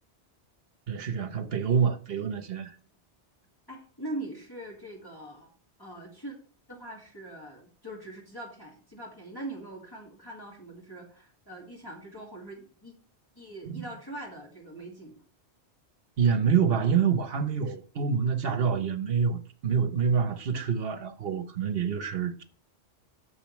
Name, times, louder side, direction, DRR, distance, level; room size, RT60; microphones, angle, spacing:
voice 1, 0.9-2.7 13.7-13.8 16.2-22.4, right 6 dB, 60° right, 1.1 m, -27 dB
voice 2, 3.7-5.5 5.8-6.4 6.7-12.9 13.4-15.2, right 1 dB, 20° left, 1.9 m, -42 dB
10.5 x 7.0 x 3.2 m
omnidirectional pair, 1.2 m